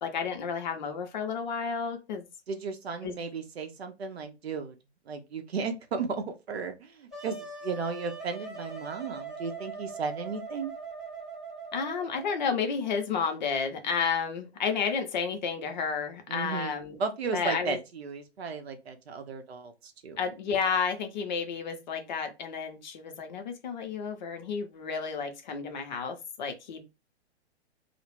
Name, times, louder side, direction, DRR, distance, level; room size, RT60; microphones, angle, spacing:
voice 1, 0.0-2.2 3.0-3.1 11.7-17.0 17.3-17.8 20.2-26.9, left 6 dB, 40° left, 0.6 m, -31 dB
voice 2, 2.5-4.7 5.1-10.7 16.3-20.2, right 5 dB, 65° right, 0.6 m, -35 dB
Wind instrument woodwind instrument, 7.1-12.6, right 4 dB, ahead, 0.4 m, -41 dB
2.2 x 2.0 x 3.1 m
figure-of-eight pair, 115°, 34 cm